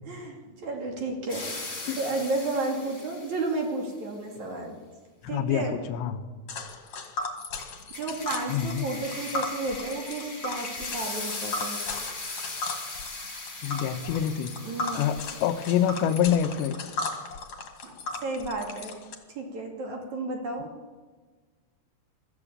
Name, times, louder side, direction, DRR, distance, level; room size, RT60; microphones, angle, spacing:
voice 1, 0.0-4.7 5.3-5.8 8.0-11.8 14.6-15.0 17.8-17.9 18.2-19.0 19.4-20.7, right 2 dB, 45° right, 1 dB, 3.6 m, -32 dB
sound 1, 1.3-3.6 7.6-16.5, left 2 dB, 15° left, 2.0 m, -39 dB
voice 2, 5.2-6.2 8.5-8.9 13.6-14.6 14.9-16.8, left 9 dB, 85° left, 8 dB, 3.2 m, -26 dB
Tick, 6.5-19.1, left 3 dB, 45° left, 2.9 m, -36 dB
22.0 x 14.5 x 8.8 m, 1.4 s
omnidirectional pair, 5.0 m